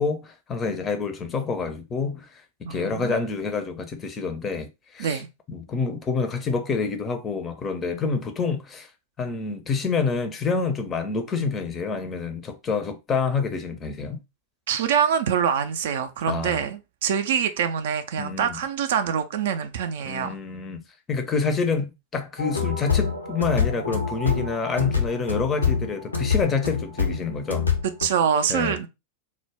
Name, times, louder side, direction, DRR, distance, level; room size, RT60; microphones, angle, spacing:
voice 1, 0.0-5.2 5.5-8.9 9.2-14.2 16.3-16.6 18.2-18.6 20.0-20.8 21.1-27.7 28.5-28.8, left 4 dB, 25° left, 0.5 m, -27 dB
voice 2, 2.6-3.2 5.0-5.3 14.7-20.4 28.0-28.9, right 8 dB, 55° right, 0.3 m, -25 dB
sound 1, 22.4-28.1, left 6 dB, 80° left, 0.4 m, -25 dB
2.2 x 2.0 x 3.2 m
figure-of-eight pair, 90°, 0 cm